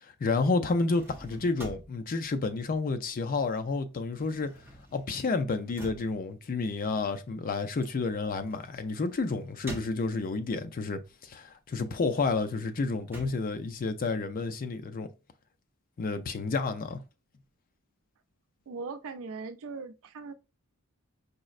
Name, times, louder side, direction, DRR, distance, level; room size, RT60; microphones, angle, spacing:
voice 1, 0.0-4.5 4.9-15.1 16.0-17.0, left 3 dB, 40° left, 0.4 m, -30 dB
sound 1, 0.6-3.4 3.7-10.5 11.0-14.5, right 1 dB, 10° right, 0.7 m, -49 dB
voice 2, 18.7-20.3, right 4 dB, 65° right, 0.4 m, -39 dB
5.1 x 2.1 x 2.4 m
head